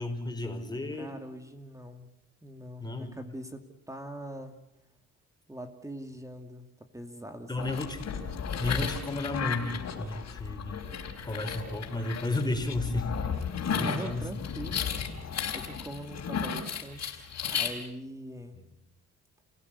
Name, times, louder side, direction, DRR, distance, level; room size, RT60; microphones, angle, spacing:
voice 1, 0.0-1.2 2.8-3.2 7.5-8.0 8.6-10.8 11.2-13.1 13.7-14.3 14.7-14.8 18.5-18.6, left 2 dB, 15° left, 5 dB, 4.6 m, -33 dB
voice 2, 1.0-2.1 2.4-4.6 5.5-6.7 6.9-7.7 13.7-18.6, equal, 10° right, 6 dB, 2.4 m, -42 dB
sound 1, 7.6-17.7, left 7 dB, 60° left, 4.3 m, -34 dB
30.0 x 16.5 x 8.3 m, 0.86 s
cardioid pair, 90°, 30 cm